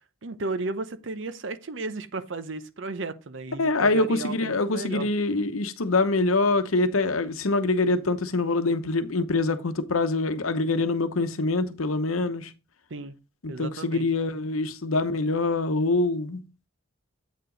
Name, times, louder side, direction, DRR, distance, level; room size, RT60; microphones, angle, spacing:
voice 1, 0.2-5.1 12.9-13.2 13.5-14.1, right 3 dB, 65° right, 0.7 m, -34 dB
voice 2, 3.6-12.5 13.4-16.7, left 3 dB, 90° left, 0.9 m, -25 dB
8.2 x 4.8 x 3.9 m
head